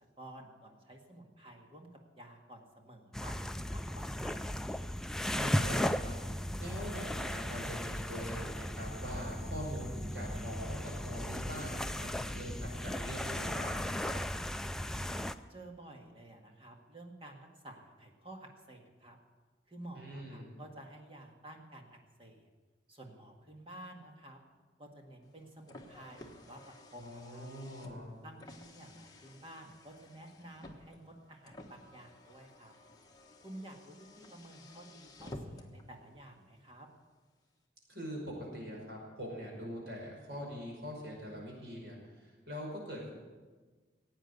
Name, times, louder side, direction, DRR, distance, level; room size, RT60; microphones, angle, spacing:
voice 1, 0.0-1.9 2.1-4.6 15.0-19.2 19.7-22.5 22.9-24.4 24.8-27.5 28.2-32.7 33.4-36.9, right 1 dB, 30° right, 2 dB, 1.9 m, -52 dB
sound 1, 3.1-15.3, equal, 5° left, 0.3 m, -36 dB
voice 2, 5.3-6.1 6.6-14.1 19.9-20.5 27.0-28.1 37.9-43.1, equal, 70° right, -1 dB, 5.6 m, -43 dB
Car, 25.2-35.9, left 1 dB, 20° left, 1.2 m, -53 dB
16.0 x 8.9 x 8.2 m, 1.3 s
head